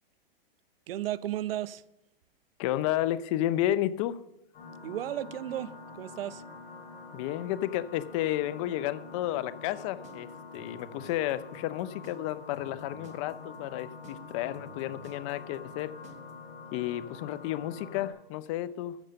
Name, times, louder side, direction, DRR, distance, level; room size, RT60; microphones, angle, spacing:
voice 1, 0.9-1.8 4.8-6.4, right 13 dB, 70° right, 0.6 m, -34 dB
voice 2, 2.6-4.2 7.1-10.3 10.5-15.9 16.7-19.1, left 13 dB, 35° left, 0.5 m, -32 dB
sound 1, 4.5-18.1, left 4 dB, 65° left, 5.6 m, -46 dB
sound 2, 9.6-16.3, right 7 dB, 20° right, 1.2 m, -54 dB
13.5 x 6.4 x 6.8 m
hypercardioid pair, 140°, 30 cm